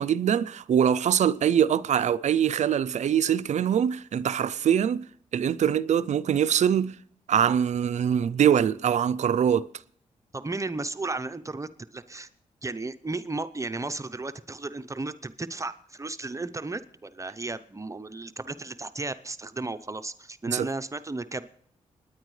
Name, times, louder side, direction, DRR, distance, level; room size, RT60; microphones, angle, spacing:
voice 1, 0.0-5.1 5.3-7.0 7.3-9.7 20.5-20.7, right 9 dB, 65° right, 0.4 m, -23 dB
voice 2, 10.3-12.3 12.6-21.5, right 3 dB, 25° right, 0.6 m, -34 dB
27.5 x 9.9 x 3.2 m
cardioid pair, 55°, 13 cm